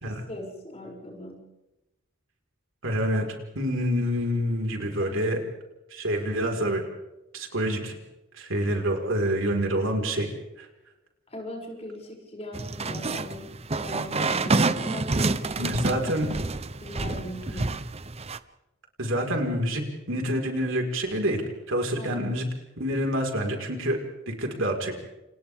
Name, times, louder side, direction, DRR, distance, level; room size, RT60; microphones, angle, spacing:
voice 1, 0.0-1.5 5.0-5.3 11.3-16.1 16.8-17.8 22.0-22.2, left 1 dB, 30° left, -2 dB, 7.1 m, -40 dB
voice 2, 2.8-3.3 3.5-5.4 5.9-6.8 7.3-7.9 8.3-10.3 10.6-10.7 15.6-16.3 19.0-19.8 20.1-21.4 21.7-22.4 22.8-24.0 24.3-24.9, equal, 70° right, 2 dB, 4.8 m, -27 dB
sound 1, 12.5-18.4, right 3 dB, 30° right, 0.8 m, -28 dB
29.5 x 29.0 x 3.6 m, 0.96 s
head